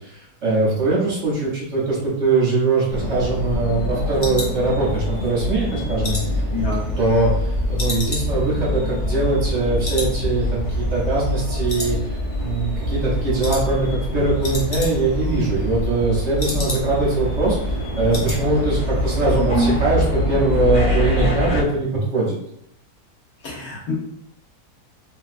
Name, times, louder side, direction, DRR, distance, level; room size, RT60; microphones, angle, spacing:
voice 1, 0.0-6.2 7.0-22.4, right 2 dB, 55° right, -5 dB, 1.0 m, -22 dB
sound 1, 2.5-5.3 5.6-7.4 7.8-9.6 9.8-10.2 10.5-10.6 11.0-11.4 11.7-12.5 12.8-13.0 13.4-13.7 14.0-14.1 14.3-15.2 15.5-17.1 17.5-17.6 17.8-18.4 18.7-19.0 19.3-19.4, left 2 dB, 50° left, 0.6 m, -33 dB
sound 2, 2.9-21.6, left 1 dB, 20° right, 1.0 m, -25 dB
voice 2, 6.5-6.9 19.3-19.7 23.4-23.9, equal, 75° left, -4 dB, 1.5 m, -24 dB
3.0 x 2.8 x 2.5 m, 0.77 s
omnidirectional pair, 1.6 m